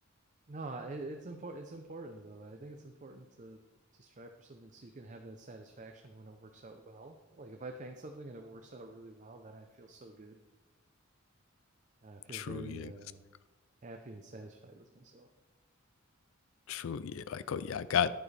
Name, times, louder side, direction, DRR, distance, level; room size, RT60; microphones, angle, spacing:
voice 1, 0.5-3.6 3.9-10.4 12.0-13.2 13.8-15.3, right 2 dB, 35° right, 4 dB, 0.6 m, -47 dB
voice 2, 12.3-12.9 16.7-18.1, left 8 dB, 70° left, 15 dB, 0.4 m, -33 dB
11.0 x 9.0 x 3.3 m, 1.2 s
head